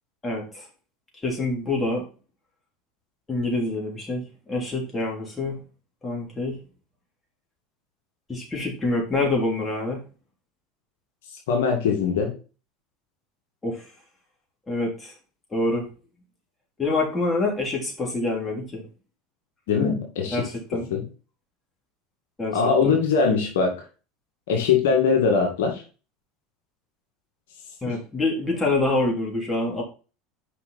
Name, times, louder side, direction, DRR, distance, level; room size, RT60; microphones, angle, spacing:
voice 1, 0.2-0.7 1.2-2.0 3.3-4.2 4.5-5.6 6.0-6.6 8.3-10.0 13.6-13.8 14.7-15.1 15.5-15.9 16.8-18.9 20.3-20.9 22.4-22.6 22.8-22.9 27.8-29.8, left 2 dB, 20° left, 0 dB, 3.5 m, -26 dB
voice 2, 11.5-12.3 19.7-20.4 20.9-21.0 22.5-23.7 24.5-25.8 27.8-28.0, left 5 dB, 80° left, 2 dB, 1.9 m, -21 dB
5.8 x 5.7 x 4.1 m, 0.34 s
hypercardioid pair, 95°, 0 cm